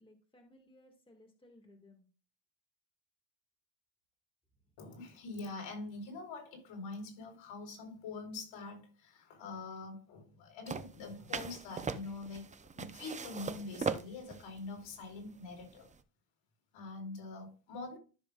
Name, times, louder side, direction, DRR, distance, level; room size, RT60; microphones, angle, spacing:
voice 1, 0.0-2.0, left 1 dB, 10° left, 1.9 m, -61 dB
voice 2, 4.8-15.9 16.7-18.0, left 3 dB, 80° left, 4.3 m, -44 dB
sound 1, 10.7-16.0, right 5 dB, 15° right, 0.5 m, -40 dB
14.0 x 6.8 x 2.4 m
cardioid pair, 145°, 45 cm